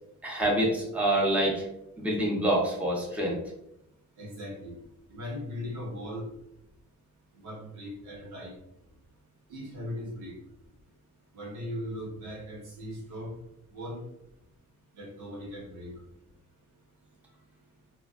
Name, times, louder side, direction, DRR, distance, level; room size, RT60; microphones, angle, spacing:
voice 1, 0.2-1.6 2.0-3.4, right 1 dB, 5° right, -3 dB, 0.7 m, -26 dB
voice 2, 4.2-4.8 5.1-6.3 7.3-8.5 9.5-10.4 11.3-13.3 13.7-14.0 14.9-15.9, left 1 dB, 90° right, -3 dB, 1.2 m, -38 dB
2.9 x 2.4 x 2.4 m, 0.81 s
cardioid pair, 90°, 30 cm